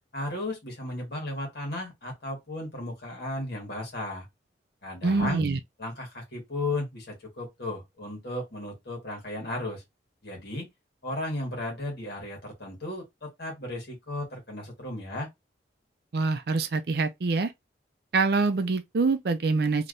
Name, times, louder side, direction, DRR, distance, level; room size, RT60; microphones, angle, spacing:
voice 1, 0.1-4.3 4.8-5.4 5.8-9.8 10.2-10.7 11.0-15.3, left 1 dB, 55° left, 1.8 m, -35 dB
voice 2, 5.0-5.6 16.1-17.5 18.1-19.9, right 3 dB, 55° right, 0.5 m, -25 dB
3.4 x 2.9 x 2.6 m
head